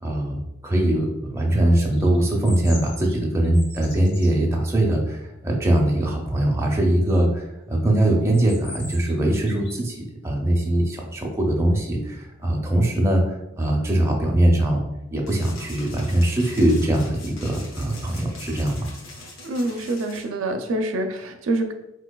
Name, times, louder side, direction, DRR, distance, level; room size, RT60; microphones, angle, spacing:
voice 1, 0.0-14.8 15.1-18.9, right 1 dB, 15° right, -1 dB, 0.4 m, -21 dB
sound 1, 1.7-4.4 8.2-9.2 9.4-9.9, left 2 dB, 55° left, 0.9 m, -41 dB
sound 2, 15.3-20.2, left 2 dB, 85° left, 0.7 m, -42 dB
voice 2, 19.4-21.7, right 2 dB, 85° right, 5 dB, 0.4 m, -26 dB
3.8 x 2.7 x 2.2 m, 0.90 s
head